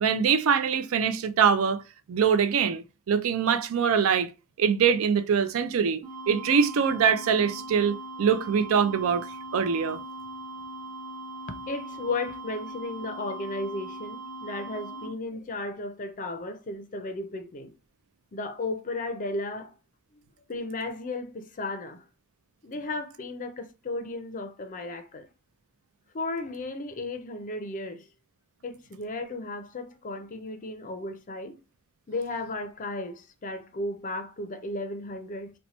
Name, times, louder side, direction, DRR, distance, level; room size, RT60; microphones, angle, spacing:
voice 1, 0.0-1.8 2.1-4.3 4.6-10.0, right 6 dB, 70° right, 0.4 m, -24 dB
sound 1, 6.0-15.1, right 1 dB, 40° right, 0.8 m, -40 dB
voice 2, 11.6-17.7 18.3-19.8 20.1-20.2 20.5-22.0 22.6-25.3 26.1-28.1 28.6-31.5 32.1-35.5, left 2 dB, 40° left, 0.5 m, -34 dB
2.8 x 2.1 x 4.0 m
head